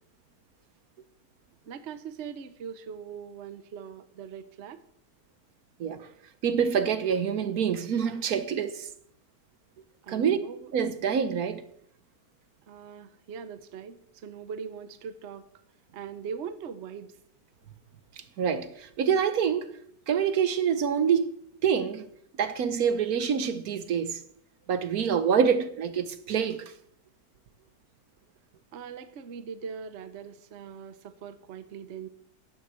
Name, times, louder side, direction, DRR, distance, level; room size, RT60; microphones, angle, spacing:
voice 1, 1.7-4.8 10.0-10.7 12.7-15.5 15.9-17.2 28.7-32.1, right 7 dB, 50° right, 1.0 m, -41 dB
voice 2, 6.4-8.9 10.1-10.4 10.7-11.6 18.4-19.7 20.1-21.3 21.6-22.1 22.4-24.2 24.7-26.7, right 7 dB, 65° right, 1.3 m, -26 dB
10.5 x 9.3 x 6.9 m
omnidirectional pair, 1.7 m